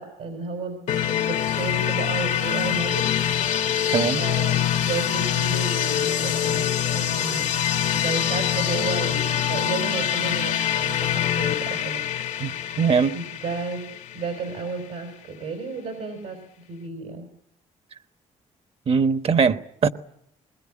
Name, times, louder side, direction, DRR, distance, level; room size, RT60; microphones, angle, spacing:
voice 1, 0.0-3.1 4.1-6.7 6.9-7.5 7.9-12.0 13.1-13.8 14.1-16.4 16.7-17.3, right 4 dB, 85° right, 4.2 m, -32 dB
sound 1, 0.9-14.6, left 10 dB, 70° left, 1.1 m, -25 dB
voice 2, 3.9-4.2 12.4-13.2 18.9-19.9, right 5 dB, 50° right, 1.2 m, -21 dB
21.0 x 21.0 x 9.8 m
cardioid pair, 85°, 13 cm